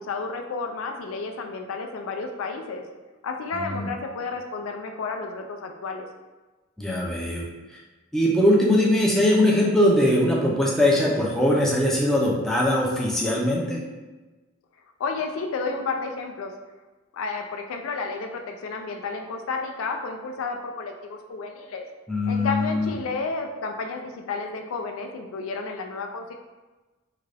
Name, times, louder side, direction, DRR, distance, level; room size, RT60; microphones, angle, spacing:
voice 1, 0.0-2.9 3.2-6.1 15.0-16.5 17.1-21.8 22.3-26.3, left 4 dB, 80° left, 4 dB, 0.4 m, -31 dB
voice 2, 3.5-3.9 6.8-7.5 7.7-7.8 8.1-13.8 22.1-22.9, left 1 dB, ahead, -4 dB, 0.5 m, -21 dB
3.7 x 2.3 x 3.2 m, 1.2 s
head